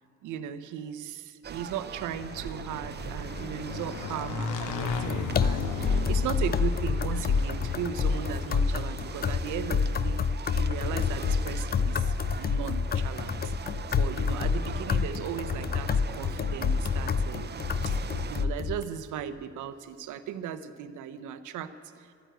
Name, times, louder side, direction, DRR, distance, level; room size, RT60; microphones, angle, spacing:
voice 1, 0.2-10.2 10.5-18.0 18.3-22.1, right 8 dB, 85° right, 11 dB, 0.8 m, -37 dB
sound 1, 1.4-18.4, right 6 dB, 35° right, 0.7 m, -41 dB
Motorcycle / Engine, 2.0-9.3, left 4 dB, 85° left, 1.2 m, -36 dB
sound 2, 4.8-18.8, left 5 dB, 30° left, 0.4 m, -28 dB
12.5 x 9.2 x 9.1 m, 2.6 s
cardioid pair, 90°, 30 cm